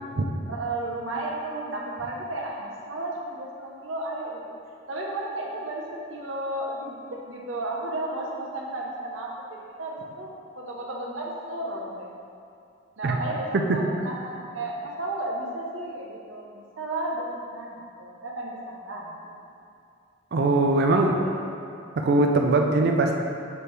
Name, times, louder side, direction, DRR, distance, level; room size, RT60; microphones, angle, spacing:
voice 1, 0.5-4.4 4.9-5.8 6.1-12.1 13.0-19.3 21.2-21.3, right 2 dB, 90° right, -2 dB, 1.0 m, -33 dB
voice 2, 20.3-21.2 22.0-23.1, right 2 dB, 55° right, 2 dB, 0.4 m, -21 dB
6.8 x 4.6 x 3.3 m, 2.5 s
head